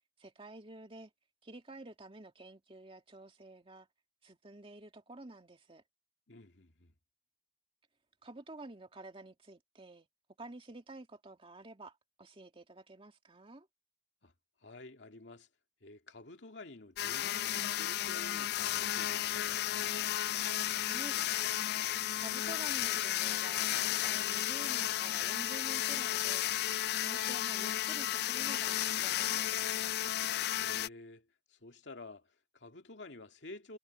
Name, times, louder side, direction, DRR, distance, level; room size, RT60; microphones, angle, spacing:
voice 1, 0.2-1.1 1.4-3.9 4.2-5.8 8.2-10.1 10.4-13.7 20.8-21.2 22.1-26.5 27.0-29.6, right 2 dB, 30° right, 2.2 m, -50 dB
voice 2, 6.3-6.9 14.2-14.3 14.6-15.5 15.8-20.0 30.6-33.8, left 2 dB, 80° left, 2.3 m, -51 dB
sound 1, 17.0-30.9, left 12 dB, 60° left, 0.3 m, -33 dB
head